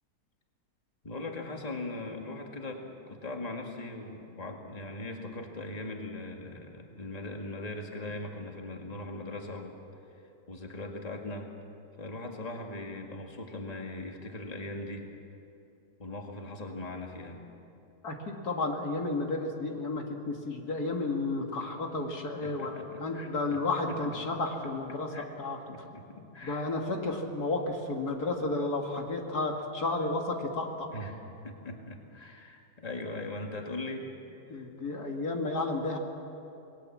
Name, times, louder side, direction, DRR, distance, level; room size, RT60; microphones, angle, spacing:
voice 1, 1.0-9.8 10.1-11.5 12.0-15.1 16.0-17.4 22.4-23.6 23.9-24.0 25.1-25.2 25.7-26.7 30.9-31.2 31.4-34.1 34.5-34.7, left 2 dB, 25° left, 2 dB, 2.2 m, -40 dB
voice 2, 18.0-22.7 23.0-25.8 26.4-30.9 34.5-36.0, left 2 dB, 75° left, 2 dB, 2.5 m, -32 dB
27.5 x 20.0 x 7.4 m, 2.8 s
omnidirectional pair, 1.7 m